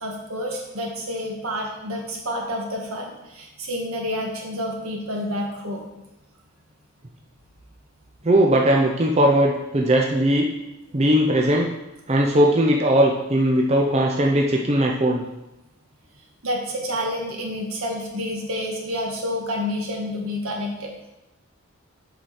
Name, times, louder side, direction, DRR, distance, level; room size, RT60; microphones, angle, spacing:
voice 1, 0.0-5.8 16.4-20.9, left 1 dB, 75° right, 0 dB, 1.5 m, -29 dB
voice 2, 8.2-10.5 10.9-11.7 12.1-15.2, right 1 dB, 30° right, 0 dB, 0.6 m, -19 dB
7.7 x 4.9 x 4.3 m, 0.97 s
head